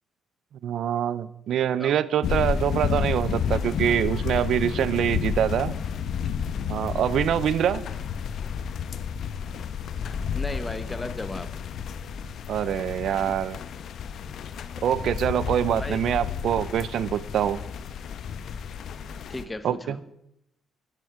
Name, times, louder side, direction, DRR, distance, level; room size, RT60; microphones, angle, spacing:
voice 1, 0.6-5.7 6.7-7.8 12.5-13.6 14.8-17.6 19.6-20.0, right 10 dB, 70° right, 18 dB, 0.6 m, -25 dB
sound 1, 2.2-19.4, left 7 dB, 65° left, 1.0 m, -31 dB
voice 2, 10.3-11.5 15.8-16.0 19.3-20.0, left 2 dB, 15° left, 12 dB, 1.1 m, -35 dB
13.5 x 11.0 x 5.0 m, 0.80 s
cardioid pair, 90°, 0 cm